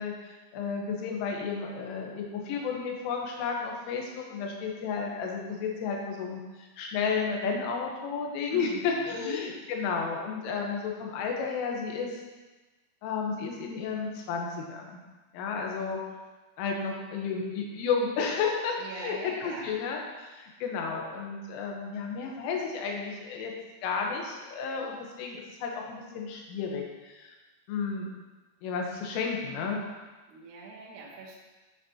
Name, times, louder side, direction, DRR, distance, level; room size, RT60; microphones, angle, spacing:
voice 1, 0.0-12.2 13.0-15.0 15.3-16.0 16.6-23.5 23.8-27.3 27.7-28.1 28.6-29.8, left 5 dB, 80° left, 0 dB, 3.5 m, -32 dB
voice 2, 8.5-9.5 18.8-19.7 30.3-31.4, right 2 dB, 70° right, -4 dB, 2.1 m, -41 dB
9.4 x 5.9 x 2.8 m, 1.2 s
omnidirectional pair, 5.7 m